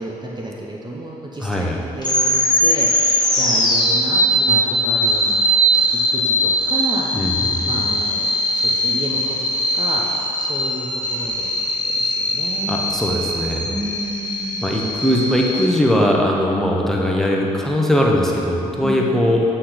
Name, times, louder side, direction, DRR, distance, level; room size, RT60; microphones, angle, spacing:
voice 1, 0.0-2.9 3.3-5.4 5.9-7.1 7.6-9.5 9.7-10.0 10.4-11.5 12.0-13.0 13.7-14.6 18.8-19.0, right 1 dB, 25° right, -2 dB, 1.0 m, -31 dB
voice 2, 1.4-1.8 7.1-7.9 12.7-13.7 14.6-19.4, equal, ahead, -2 dB, 1.2 m, -20 dB
sound 1, 2.0-15.7, equal, 25° left, 1.6 m, -20 dB
7.6 x 4.3 x 5.1 m, 2.8 s
hypercardioid pair, 40°, 18 cm